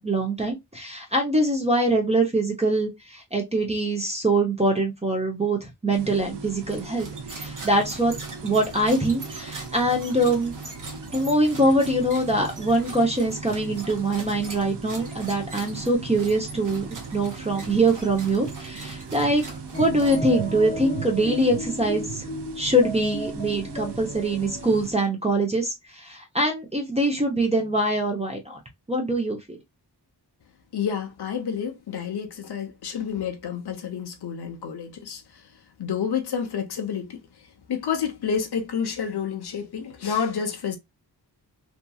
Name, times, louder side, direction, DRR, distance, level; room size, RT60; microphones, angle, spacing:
voice 1, 0.0-8.1 8.4-10.5 11.1-19.4 19.8-22.3 22.6-28.6 28.9-29.6, right 1 dB, 15° right, 0.7 m, -23 dB
sound 1, 5.9-24.9, right 4 dB, 75° right, 0.6 m, -38 dB
sound 2, 6.7-20.6, right 3 dB, 45° right, 0.9 m, -43 dB
sound 3, 19.7-24.7, left 1 dB, 20° left, 0.5 m, -35 dB
voice 2, 30.7-35.4 35.8-37.2 37.7-40.8, left 7 dB, 65° left, 0.7 m, -29 dB
2.8 x 2.5 x 2.3 m
wide cardioid pair, 85°, 42 cm